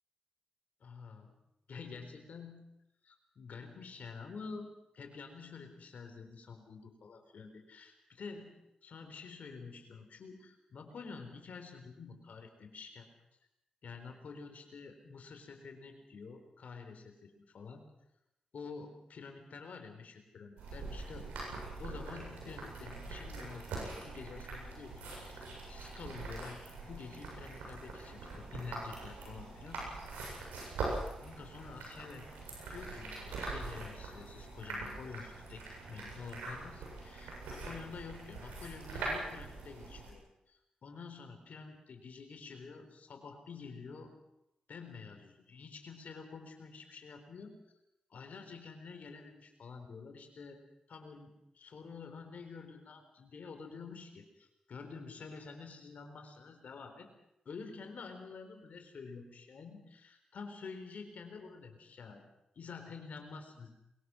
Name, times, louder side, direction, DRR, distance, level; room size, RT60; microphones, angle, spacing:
voice 1, 0.8-1.4 1.7-2.6 3.0-7.9 8.2-8.5 8.8-13.1 13.8-17.8 18.5-21.3 21.8-26.6 26.9-29.8 31.2-32.3 32.7-44.1 44.7-47.6 48.1-50.6 50.9-57.1 57.4-62.2 62.6-63.8, left 5 dB, 70° left, 5 dB, 4.2 m, -48 dB
sound 1, 20.6-40.1, right 3 dB, 90° right, 7.7 m, -43 dB
22.5 x 22.0 x 6.4 m, 0.87 s
supercardioid pair, 45°, 3 cm